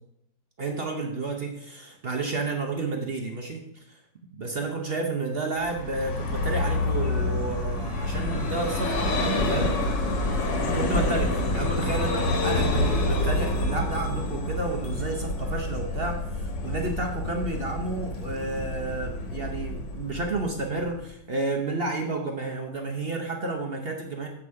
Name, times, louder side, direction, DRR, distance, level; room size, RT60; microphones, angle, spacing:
voice 1, 0.6-4.0 4.3-9.8 10.6-24.3, right 3 dB, 55° right, 2 dB, 0.7 m, -31 dB
Vehicle, 5.6-21.1, left 2 dB, 70° left, 1.8 m, -28 dB
7.9 x 6.0 x 4.7 m, 0.77 s
omnidirectional pair, 2.0 m